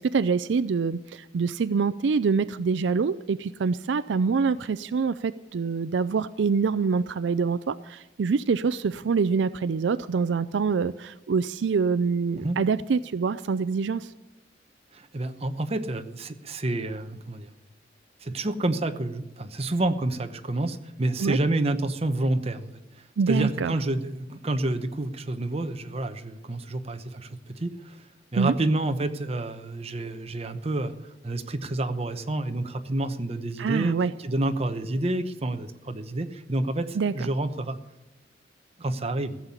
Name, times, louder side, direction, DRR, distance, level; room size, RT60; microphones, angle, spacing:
voice 1, 0.0-14.1 21.2-21.4 23.2-23.7 28.4-28.5 33.6-34.1 37.0-37.3, right 5 dB, 75° right, 15 dB, 0.4 m, -25 dB
voice 2, 14.9-17.5 18.2-28.1 28.3-30.9 31.2-37.8 38.8-39.4, right 2 dB, 35° right, 8 dB, 0.9 m, -29 dB
15.5 x 7.4 x 9.6 m, 0.99 s
head